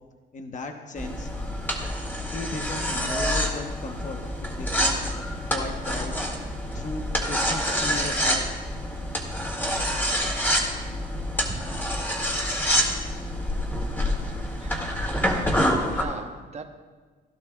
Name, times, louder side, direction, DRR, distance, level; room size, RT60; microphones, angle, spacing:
voice 1, 0.3-1.3 1.6-1.7 2.3-5.1 5.5-8.5 8.8-9.0, left 3 dB, 40° left, 5 dB, 1.1 m, -37 dB
sound 1, 1.0-16.0, equal, 10° left, 2.1 m, -27 dB
voice 2, 15.4-16.6, right 5 dB, 35° right, 4 dB, 1.1 m, -39 dB
17.0 x 11.5 x 2.4 m, 1.4 s
cardioid pair, 90°, 20 cm